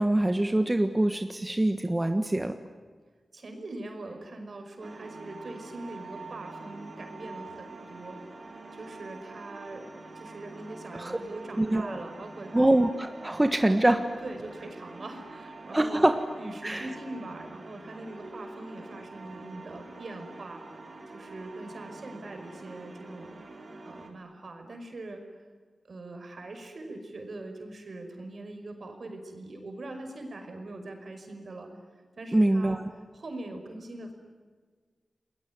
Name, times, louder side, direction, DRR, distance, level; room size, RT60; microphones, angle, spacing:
voice 1, 0.0-2.6 11.0-11.2 11.6-12.0 12.5-14.1 15.7-16.2 16.6-16.9 32.3-32.8, right 1 dB, 20° right, 7 dB, 1.4 m, -24 dB
voice 2, 3.3-8.2 8.7-9.9 10.1-12.7 14.2-16.1 16.4-20.6 21.1-23.3 23.8-25.2 25.9-31.7 32.2-32.8 33.1-34.1, right 2 dB, 60° right, 5 dB, 5.5 m, -42 dB
sound 1, 4.8-24.1, right 2 dB, 45° right, 3.8 m, -45 dB
30.0 x 20.5 x 9.7 m, 1.5 s
wide cardioid pair, 70°, 0 cm